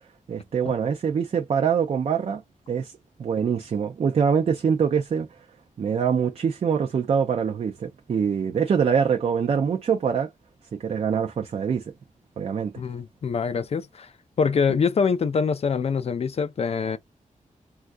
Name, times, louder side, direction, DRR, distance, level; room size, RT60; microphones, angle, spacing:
voice 1, 0.3-2.4 2.7-5.4 5.8-10.3 10.7-11.8 12.4-12.7, right 7 dB, 50° right, 0.4 m, -24 dB
voice 2, 12.8-14.1 14.4-17.0, left 5 dB, 50° left, 0.4 m, -24 dB
3.3 x 2.4 x 2.5 m
wide cardioid pair, 140°, 14 cm